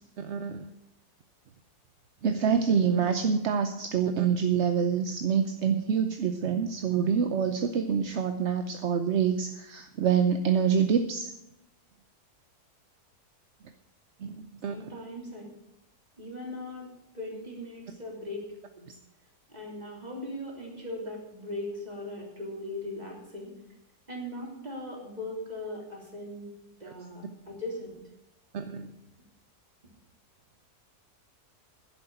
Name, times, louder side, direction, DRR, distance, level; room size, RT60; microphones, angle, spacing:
voice 1, 0.2-0.7 2.2-11.3 14.2-14.8 28.5-28.9, right 7 dB, 55° right, 8 dB, 0.9 m, -26 dB
voice 2, 14.7-15.4 16.2-16.9 17.1-18.5 18.7-19.0 19.5-23.5 24.1-27.9, left 1 dB, 25° right, -1 dB, 3.4 m, -39 dB
11.0 x 7.9 x 8.7 m, 0.87 s
omnidirectional pair, 1.7 m